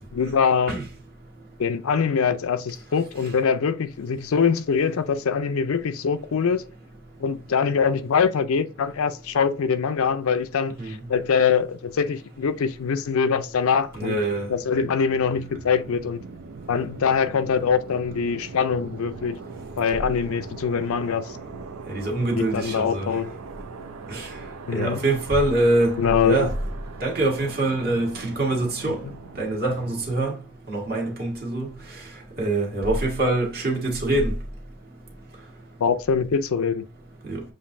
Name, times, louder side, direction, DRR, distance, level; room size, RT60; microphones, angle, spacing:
voice 1, 0.1-0.8 1.6-6.6 7.2-14.2 14.5-16.2 16.7-19.4 19.8-21.4 22.3-23.3 24.7-25.0 26.0-26.5 35.8-36.9, left 6 dB, 65° left, 0.4 m, -23 dB
sound 1, 13.5-30.2, right 4 dB, 70° right, 0.6 m, -41 dB
voice 2, 14.0-14.5 21.9-23.1 24.1-24.3 24.7-26.5 27.0-29.0 29.4-30.3 30.7-31.7 32.4-34.3 37.3-37.4, right 2 dB, 45° right, 1.5 m, -24 dB
7.2 x 2.6 x 2.6 m
head